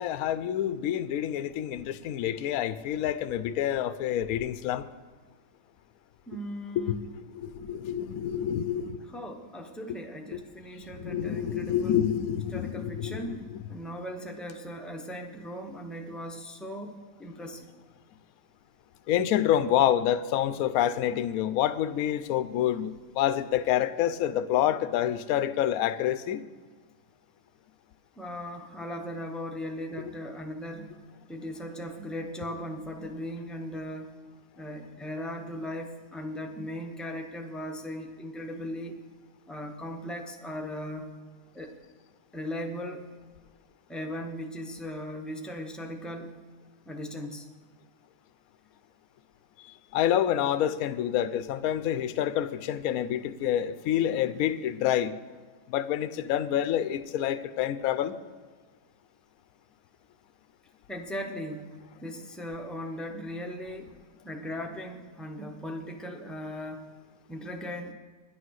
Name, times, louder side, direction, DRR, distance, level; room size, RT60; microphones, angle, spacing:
voice 1, 0.0-4.9 6.9-9.0 10.3-10.4 11.0-13.6 19.1-26.4 49.9-55.2 55.7-58.2, left 11 dB, 65° left, 12 dB, 0.9 m, -27 dB
voice 2, 6.3-7.0 9.0-12.0 12.5-17.7 28.2-30.9 31.3-34.2 34.6-39.0 39.5-41.1 41.5-41.8 42.3-43.1 43.9-46.3 46.9-47.5 54.3-54.6 60.9-63.9 64.2-66.9 67.3-67.9, equal, ahead, 2 dB, 0.4 m, -38 dB
10.5 x 9.9 x 6.3 m, 1.5 s
omnidirectional pair, 1.8 m